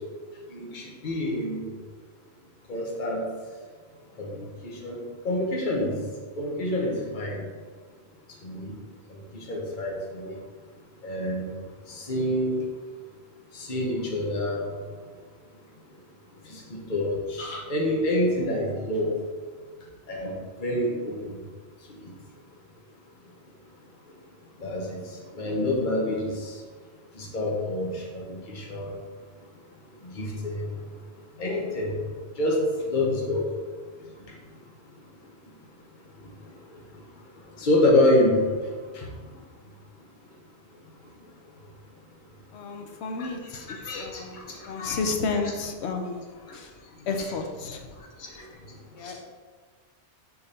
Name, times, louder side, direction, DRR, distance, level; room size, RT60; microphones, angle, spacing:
voice 1, 0.5-1.6 2.7-3.2 4.2-5.0 5.2-5.9 6.4-7.4 8.4-8.7 9.5-10.3 11.0-11.5 11.9-12.5 13.5-14.6 16.5-19.1 20.1-20.3 20.6-21.4 24.6-25.0 25.3-26.5 27.2-28.9 30.1-30.6 31.4-31.9 32.4-32.6 32.9-33.4 37.6-38.4 38.9-39.0 43.2-43.3 43.8-44.2 44.8-45.0 49.0-49.1, left 1 dB, 45° left, -2 dB, 1.2 m, -27 dB
voice 2, 42.5-44.4 44.7-46.2 46.5-46.7 47.1-47.9 48.9-49.2, left 4 dB, 75° left, 4 dB, 1.0 m, -31 dB
5.1 x 4.5 x 4.2 m, 1.5 s
omnidirectional pair, 1.2 m